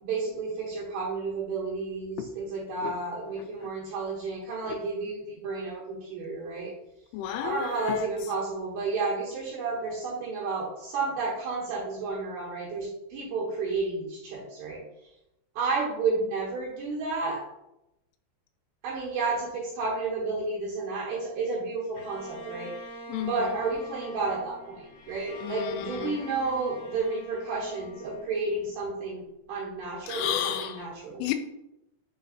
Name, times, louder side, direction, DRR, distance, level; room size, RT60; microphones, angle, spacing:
voice 1, 0.0-6.7 7.4-14.8 15.5-17.4 18.8-29.2 29.5-31.2, right 3 dB, 70° right, -6 dB, 3.2 m, -31 dB
voice 2, 2.6-2.9 3.4-3.7 4.7-4.8 7.1-8.1 23.1-23.5 25.4-26.2 30.1-30.9 31.2-31.3, left 10 dB, 90° left, 7 dB, 3.1 m, -32 dB
Bowed string instrument, 21.9-29.2, left 2 dB, 35° left, 2.7 m, -45 dB
7.0 x 3.9 x 4.2 m, 0.87 s
omnidirectional pair, 5.6 m